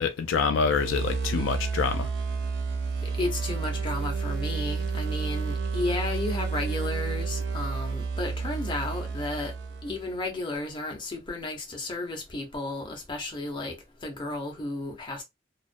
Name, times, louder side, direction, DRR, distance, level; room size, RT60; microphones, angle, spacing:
voice 1, 0.0-2.1, left 5 dB, 80° left, 0.3 m, -26 dB
sound 1, 0.7-10.2, right 4 dB, 75° right, 0.5 m, -30 dB
voice 2, 3.0-9.5 9.8-13.7 14.0-15.2, left 2 dB, 25° left, 0.7 m, -33 dB
2.3 x 2.1 x 2.5 m
head